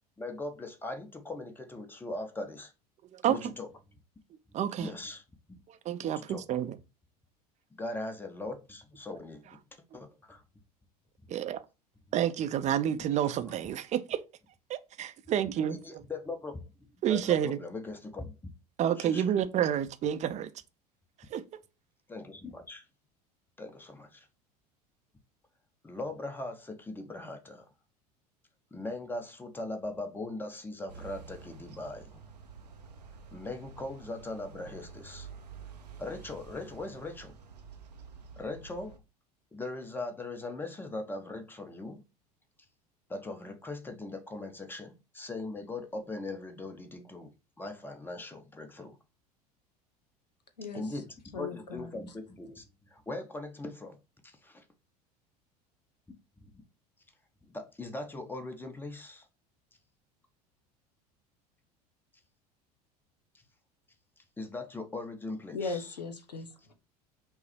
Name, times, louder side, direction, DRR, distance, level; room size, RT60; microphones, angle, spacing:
voice 1, 0.2-2.7 3.2-3.7 4.8-5.2 6.0-6.6 7.7-9.6 9.9-10.4 13.2-13.3 15.7-16.6 17.1-18.5 19.0-19.3 22.1-22.9 23.6-24.3 25.8-27.7 28.7-32.2 33.3-35.3 36.0-37.4 38.4-39.0 39.5-42.0 43.1-47.3 47.6-49.0 50.7-51.1 51.3-54.0 54.2-54.6 56.4-56.5 57.5-59.3 64.2-65.8, left 2 dB, 10° left, 0.8 m, -40 dB
voice 2, 3.1-3.5 4.5-4.9 5.7-6.8 11.3-11.6 12.1-14.2 14.7-16.0 17.0-17.6 18.8-20.5 21.3-21.4, right 10 dB, 35° right, 0.5 m, -29 dB
sound 1, 30.9-39.0, right 5 dB, 85° right, 0.7 m, -49 dB
voice 3, 51.3-51.9 65.5-66.7, left 4 dB, 90° left, 0.7 m, -38 dB
5.5 x 2.0 x 4.3 m
figure-of-eight pair, 70°, 20 cm